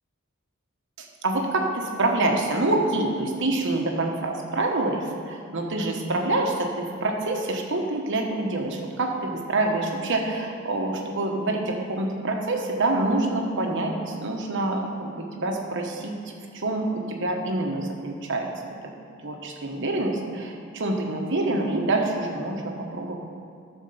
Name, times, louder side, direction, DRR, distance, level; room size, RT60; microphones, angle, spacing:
voice 1, 1.0-18.9 19.2-23.2, right 2 dB, 60° right, 1 dB, 1.1 m, -26 dB
11.5 x 4.6 x 6.9 m, 2.3 s
head